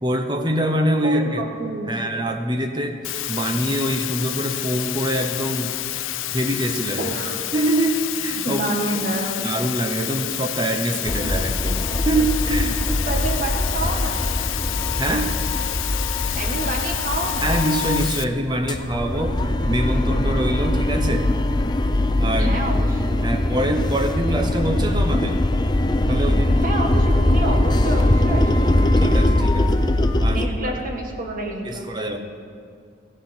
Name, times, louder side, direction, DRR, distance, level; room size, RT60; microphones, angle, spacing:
voice 1, 0.0-1.4 1.9-5.8 6.3-7.1 7.5-9.1 9.4-12.8 15.0-15.3 17.4-21.3 22.2-22.5 23.2-25.4 26.1-26.7 29.0-29.8 30.2-30.7 31.6-32.2, right 1 dB, 20° right, 5 dB, 0.9 m, -24 dB
voice 2, 1.0-2.0 7.0-7.4 8.4-9.4 13.1-14.2 16.3-17.5 22.4-23.2 26.6-28.7 30.3-31.9, right 2 dB, 40° right, 1 dB, 1.7 m, -28 dB
Water, 3.0-18.2, left 14 dB, 75° left, 0.5 m, -29 dB
sound 1, 11.1-18.2 18.5-30.5, left 1 dB, 20° left, 0.5 m, -21 dB
16.0 x 15.5 x 4.5 m, 2.3 s
head